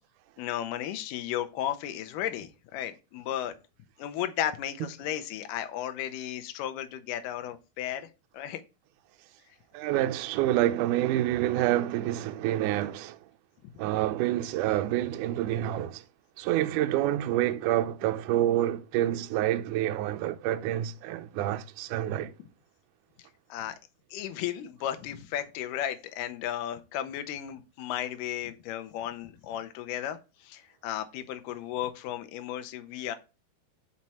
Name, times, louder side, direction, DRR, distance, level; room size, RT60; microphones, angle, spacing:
voice 1, 0.4-3.5 4.0-8.1 8.3-8.6 23.5-23.8 24.1-33.2, left 11 dB, 75° left, 2.1 m, -34 dB
voice 2, 9.7-13.2 13.8-16.1 16.4-22.3, right 13 dB, 85° right, 1.8 m, -27 dB
6.0 x 4.4 x 4.2 m
omnidirectional pair, 4.2 m